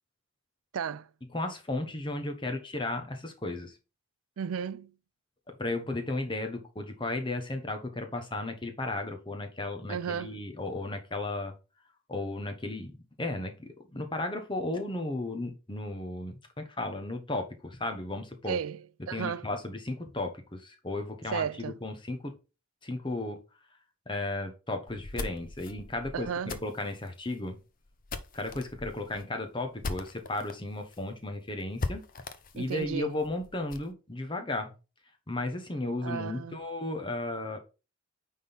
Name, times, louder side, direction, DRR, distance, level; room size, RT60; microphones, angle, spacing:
voice 1, 0.7-1.1 4.4-4.9 9.9-10.3 18.4-19.5 21.3-21.7 26.1-26.6 32.6-33.2 36.0-36.6, right 7 dB, 75° right, 0.4 m, -34 dB
voice 2, 1.3-3.8 5.5-11.5 12.1-12.9 13.2-18.6 19.1-22.3 22.8-23.4 24.1-26.3 26.6-27.6 28.3-32.0 32.5-34.7 35.3-37.6, left 2 dB, 25° left, 1.1 m, -34 dB
sound 1, 24.9-30.6 30.9-31.0 31.3-31.4 31.8-33.9, left 3 dB, 40° left, 0.7 m, -39 dB
9.3 x 3.7 x 4.2 m
head